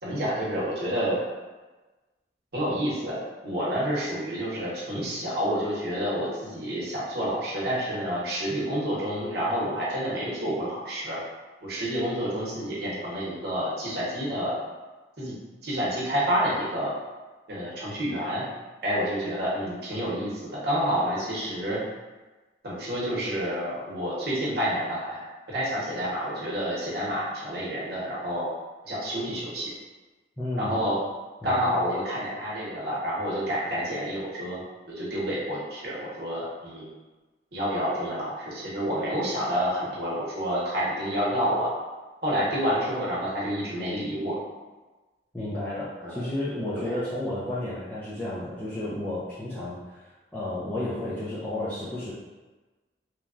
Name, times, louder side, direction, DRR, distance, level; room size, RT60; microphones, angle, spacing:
voice 1, 0.0-1.2 2.5-3.2 3.4-11.2 11.6-14.5 15.2-15.3 15.6-16.9 17.5-18.4 18.8-21.8 22.6-28.5 28.8-29.7 30.6-31.0 31.4-34.6 34.9-36.9 37.5-41.7 42.2-44.4 46.0-46.3 46.7-47.0, equal, 60° right, -7 dB, 0.9 m, -29 dB
voice 2, 30.4-30.8 31.4-31.6 45.3-52.1, left 1 dB, 10° left, -11 dB, 0.4 m, -32 dB
3.0 x 2.2 x 2.4 m, 1.2 s
head